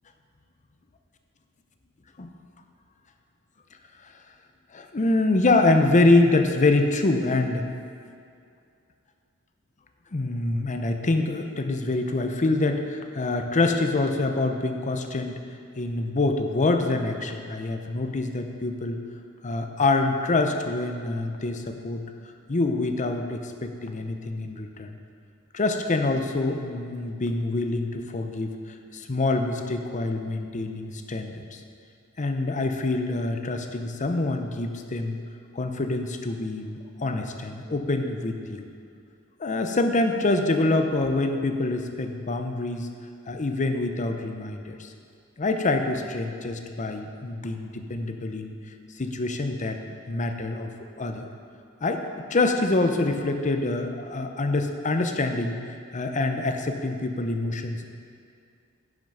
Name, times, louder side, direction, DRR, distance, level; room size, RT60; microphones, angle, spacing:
voice 1, 4.7-7.7 10.1-15.4 15.8-19.0 19.4-22.0 22.5-24.9 25.5-28.5 28.9-31.6 32.2-35.2 35.5-38.7 39.4-42.9 43.3-44.9 45.4-48.5 49.0-49.8 50.1-50.7 51.0-51.3 51.8-55.6 55.9-57.8, left 2 dB, 35° left, 6 dB, 0.7 m, -25 dB
10.5 x 6.0 x 5.4 m, 2.3 s
head